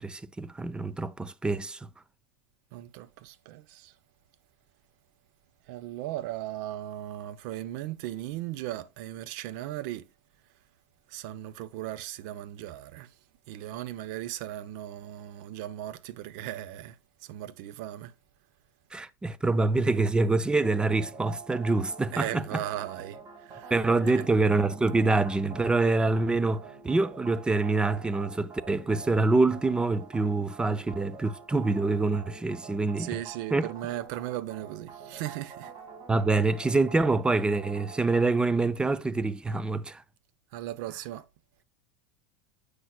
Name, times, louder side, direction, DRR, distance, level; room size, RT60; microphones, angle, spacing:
voice 1, 0.0-1.9 18.9-22.6 23.7-33.2 33.5-33.7 36.1-40.0, right 3 dB, 10° right, 0.4 m, -26 dB
voice 2, 2.7-3.9 5.7-10.0 11.1-13.1 13.5-16.9 17.3-18.1 22.1-23.2 23.5-23.7 24.0-24.2 33.0-35.7 40.5-41.2, right 13 dB, 60° right, 0.7 m, -37 dB
sound 1, 20.6-38.5, right 6 dB, 35° right, 1.9 m, -47 dB
8.0 x 5.8 x 2.3 m
supercardioid pair, 135°, 12 cm